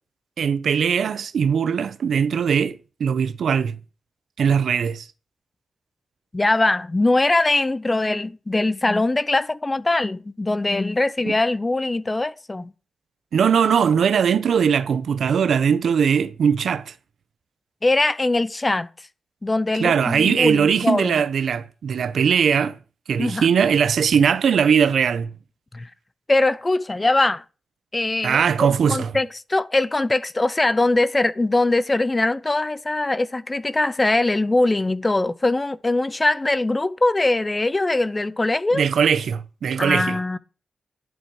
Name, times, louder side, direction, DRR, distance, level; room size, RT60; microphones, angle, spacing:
voice 1, 0.4-3.8 4.4-5.1 11.2-11.3 13.3-16.9 19.8-22.8 23.1-25.3 28.2-29.1 38.7-40.2, right 7 dB, 80° right, 0.8 m, -20 dB
voice 2, 6.3-12.7 17.8-18.9 19.4-21.2 23.2-23.5 25.7-25.9 26.3-27.4 27.9-38.8 39.8-40.4, left 2 dB, 25° left, 0.7 m, -22 dB
11.0 x 7.7 x 4.8 m
cardioid pair, 75°, 0 cm